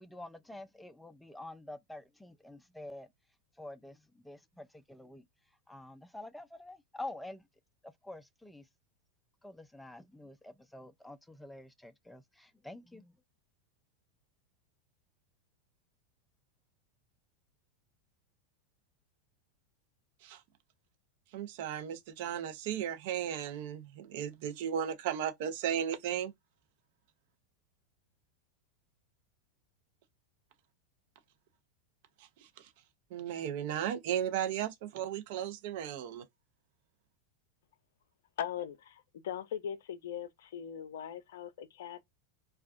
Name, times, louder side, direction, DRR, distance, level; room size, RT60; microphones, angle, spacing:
voice 1, 0.0-3.1 3.6-5.3 5.7-7.4 7.8-8.7 9.4-13.1, left 2 dB, 5° left, 0.4 m, -48 dB
voice 2, 21.3-26.3 32.6-32.7 33.1-36.2, right 9 dB, 60° right, 0.6 m, -35 dB
voice 3, 38.4-42.0, left 9 dB, 70° left, 0.4 m, -40 dB
2.4 x 2.2 x 2.4 m
hypercardioid pair, 90°, 0 cm